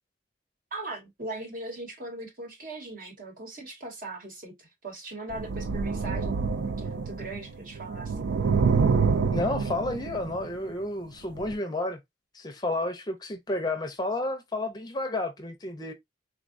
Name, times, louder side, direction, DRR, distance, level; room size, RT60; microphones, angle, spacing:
voice 1, 0.7-8.3, right 2 dB, 50° right, 1.1 m, -40 dB
sound 1, 5.3-7.5 7.7-10.5 11.4-11.5, right 5 dB, 80° right, 0.4 m, -27 dB
voice 2, 9.3-12.0 12.3-15.9, left 2 dB, 20° left, 0.5 m, -31 dB
3.5 x 2.2 x 2.5 m
head